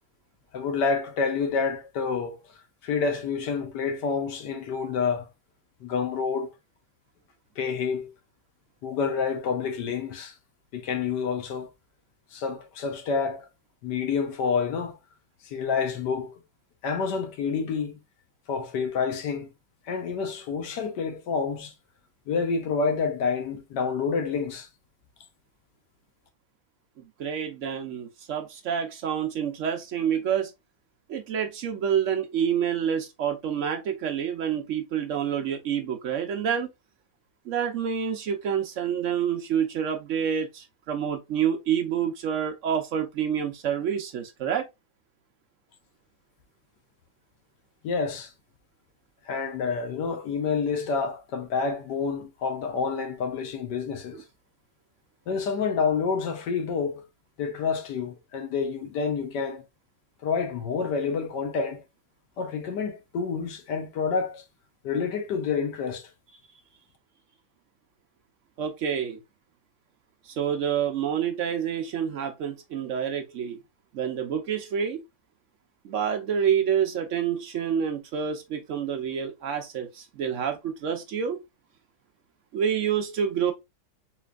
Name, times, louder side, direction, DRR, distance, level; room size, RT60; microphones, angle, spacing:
voice 1, 0.5-2.4 2.8-5.3 5.8-6.5 7.6-8.1 8.8-10.3 10.7-11.7 12.3-13.5 13.8-15.0 15.4-16.3 16.8-18.0 18.5-19.5 19.9-21.7 22.3-24.7 47.8-48.3 49.3-54.2 55.3-57.0 57.4-59.6 60.2-61.8 62.4-64.4 64.8-66.1, left 5 dB, 70° left, 1.4 m, -28 dB
voice 2, 27.2-30.5 31.1-36.7 37.5-44.7 54.1-54.2 68.6-69.2 70.3-73.6 73.9-75.0 75.8-81.4 82.5-83.5, right 8 dB, 75° right, 0.6 m, -28 dB
4.2 x 3.2 x 2.3 m
omnidirectional pair, 2.1 m